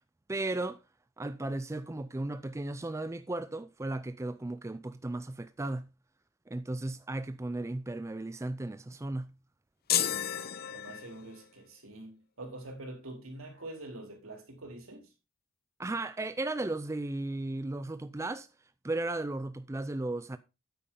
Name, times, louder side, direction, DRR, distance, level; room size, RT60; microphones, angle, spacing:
voice 1, 0.3-0.8 1.2-5.9 6.5-9.3 15.8-18.5 18.8-20.4, right 2 dB, 15° right, 0.4 m, -35 dB
sound 1, 9.9-11.4, left 10 dB, 45° left, 0.8 m, -32 dB
voice 2, 10.7-15.1, right 2 dB, 75° right, 3.6 m, -45 dB
9.1 x 8.4 x 3.8 m
head